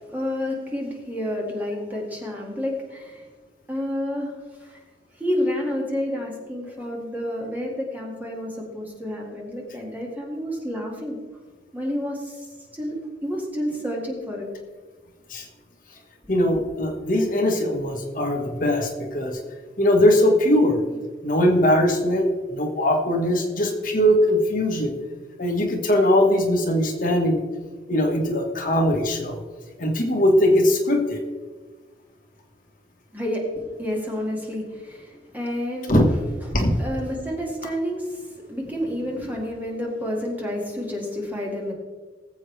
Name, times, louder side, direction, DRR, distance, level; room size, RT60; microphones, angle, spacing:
voice 1, 0.1-3.3 3.7-4.8 5.2-11.2 11.7-14.5 16.2-16.3 33.1-36.0 36.8-41.7, left 1 dB, 10° right, -2 dB, 2.1 m, -30 dB
voice 2, 16.3-19.4 19.8-20.8 21.2-24.9 25.4-27.4 27.9-29.4 29.8-31.2 35.9-36.0 36.5-36.8, left 1 dB, 50° left, 2 dB, 1.5 m, -20 dB
19.5 x 7.7 x 3.3 m, 1.4 s
head